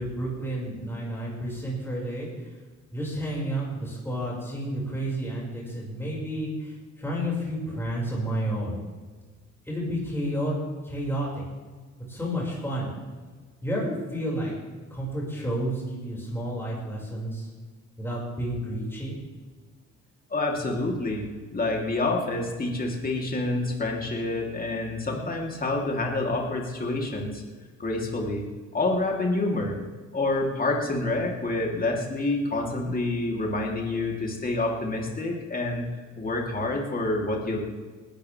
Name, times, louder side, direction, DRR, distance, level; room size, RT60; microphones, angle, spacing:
voice 1, 0.0-2.3 2.9-8.8 9.7-10.5 10.8-11.4 12.1-12.9 13.6-14.5 14.9-17.5 18.0-19.1, right 1 dB, 10° left, -5 dB, 5.6 m, -31 dB
voice 2, 20.3-21.3 21.5-27.4 27.8-28.4 28.7-29.8 30.1-37.6, left 2 dB, 30° left, -1 dB, 3.3 m, -27 dB
20.0 x 13.0 x 3.5 m, 1.4 s
cardioid pair, 90°, 30 cm